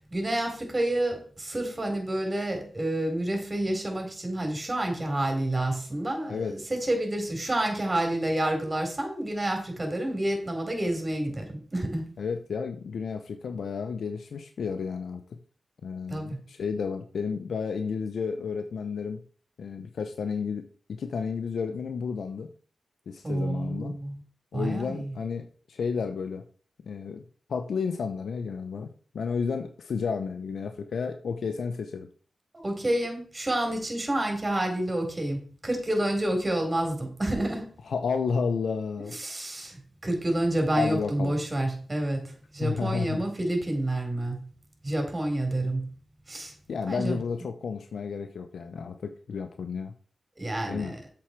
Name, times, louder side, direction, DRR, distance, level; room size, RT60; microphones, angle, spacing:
voice 1, 0.1-12.1 16.1-16.4 23.2-24.2 24.5-25.1 32.6-37.7 39.1-44.4 44.8-45.9 46.3-46.5 46.9-47.2 50.4-51.0, right 1 dB, 30° right, 3 dB, 4.2 m, -29 dB
voice 2, 12.2-15.2 15.8-19.2 19.6-22.5 23.1-24.0 24.5-26.4 26.9-27.2 27.5-28.9 29.1-32.1 37.9-39.2 40.8-41.3 42.6-43.2 46.7-49.9 50.7-50.9, left 5 dB, 85° left, 8 dB, 0.8 m, -31 dB
7.9 x 7.1 x 4.6 m, 0.43 s
cardioid pair, 50°, 0 cm